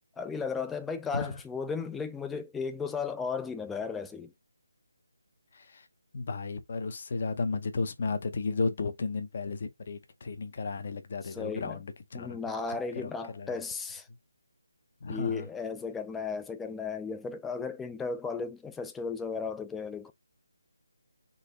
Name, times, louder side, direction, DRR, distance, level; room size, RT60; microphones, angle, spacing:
voice 1, 0.2-4.3 11.2-11.8 12.1-14.1 15.1-20.1, left 5 dB, 5° left, 0.4 m, -35 dB
voice 2, 5.5-5.9 6.1-12.4 13.0-13.6 15.0-15.5, left 4 dB, 45° left, 0.7 m, -34 dB
4.0 x 2.8 x 4.0 m
figure-of-eight pair, 160°, 0 cm